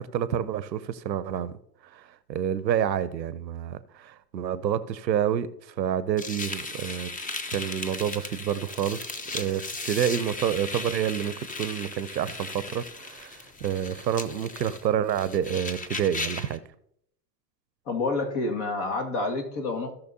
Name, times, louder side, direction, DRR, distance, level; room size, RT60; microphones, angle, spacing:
voice 1, 0.0-1.6 1.9-7.1 7.5-16.6, right 9 dB, 85° right, 0.7 m, -28 dB
sound 1, 6.2-16.6, left 3 dB, 15° left, 0.8 m, -36 dB
voice 2, 17.9-19.9, left 3 dB, 55° left, 2.1 m, -28 dB
17.0 x 5.9 x 2.8 m
hypercardioid pair, 75°, 50 cm